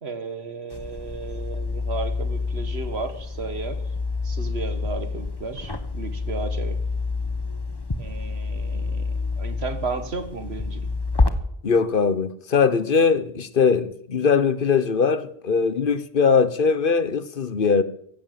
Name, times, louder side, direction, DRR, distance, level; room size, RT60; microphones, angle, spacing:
voice 1, 0.0-3.8 4.2-6.8 8.0-10.9, right 4 dB, 90° right, 1.9 m, -34 dB
sound 1, 0.7-11.3, left 3 dB, 25° left, 1.2 m, -28 dB
voice 2, 11.6-17.8, left 5 dB, 60° left, 1.2 m, -21 dB
15.5 x 12.0 x 7.5 m
omnidirectional pair, 1.0 m